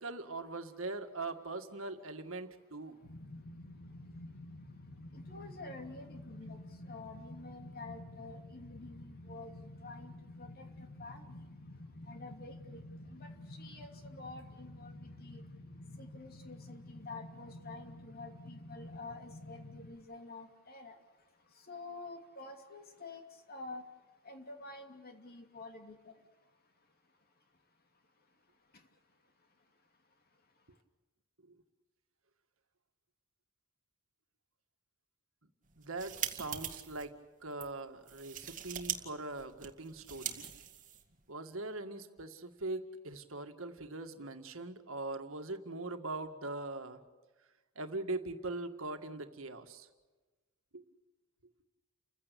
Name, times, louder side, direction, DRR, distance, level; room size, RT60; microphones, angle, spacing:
voice 1, 0.0-3.0 31.4-31.6 35.8-37.2 37.4-40.4 41.3-47.0 47.8-49.9 50.7-50.8, right 2 dB, 65° right, 7 dB, 1.9 m, -41 dB
sound 1, 3.0-20.0, left 1 dB, 80° left, 2.1 m, -50 dB
voice 2, 5.1-6.6 6.9-10.7 11.0-11.4 12.1-12.8 13.1-15.4 16.0-21.0 21.7-23.2 23.5-23.8 24.2-26.1, left 3 dB, 45° left, 5 dB, 2.8 m, -49 dB
sound 2, 35.7-37.0 37.5-37.7 38.1-39.0 39.2-41.2, right 9 dB, 40° right, 2.1 m, -41 dB
30.0 x 16.0 x 8.4 m, 1.3 s
head